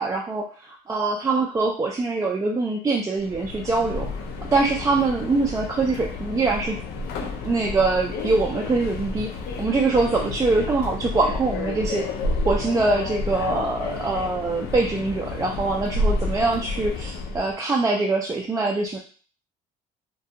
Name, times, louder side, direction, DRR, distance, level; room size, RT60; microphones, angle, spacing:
voice 1, 0.0-4.1 4.5-6.8 7.4-9.3 9.6-12.1 12.5-19.0, right 3 dB, 20° right, -1 dB, 0.3 m, -23 dB
Subway metro underground, 3.2-17.5, left 3 dB, 70° left, 0.4 m, -30 dB
2.4 x 2.2 x 2.7 m, 0.41 s
cardioid pair, 110°, 17 cm